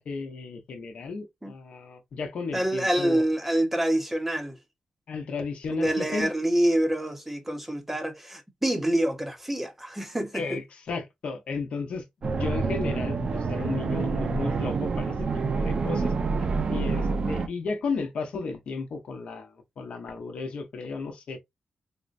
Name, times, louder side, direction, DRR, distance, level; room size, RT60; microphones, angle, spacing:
voice 1, 0.0-3.2 5.1-6.3 10.3-16.1 16.7-21.4, left 4 dB, 70° left, 0.9 m, -34 dB
voice 2, 2.5-4.6 5.7-10.6, right 1 dB, 10° right, 0.7 m, -26 dB
sound 1, 12.2-17.5, right 4 dB, 50° right, 0.5 m, -27 dB
3.7 x 2.1 x 2.5 m
wide cardioid pair, 120°, 2 cm